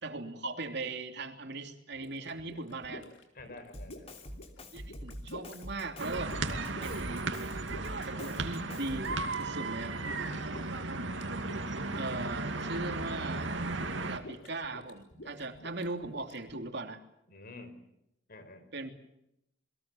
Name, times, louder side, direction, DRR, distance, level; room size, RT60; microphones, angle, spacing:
voice 1, 0.0-3.0 4.7-6.4 6.8-7.3 8.0-10.0 11.9-13.5 14.1-17.0 18.7-18.9, right 2 dB, 65° right, 5 dB, 3.1 m, -39 dB
sound 1, 1.9-16.6, left 1 dB, 85° left, 4.3 m, -50 dB
voice 2, 3.3-4.2 10.3-10.6 17.3-17.8 18.3-18.7, left 2 dB, 55° left, 10 dB, 5.3 m, -49 dB
Drum kit, 3.7-9.3, equal, 35° left, 3.0 m, -45 dB
sound 2, 6.0-14.2, right 3 dB, 80° right, 2.6 m, -35 dB
28.5 x 22.0 x 7.2 m, 0.81 s
head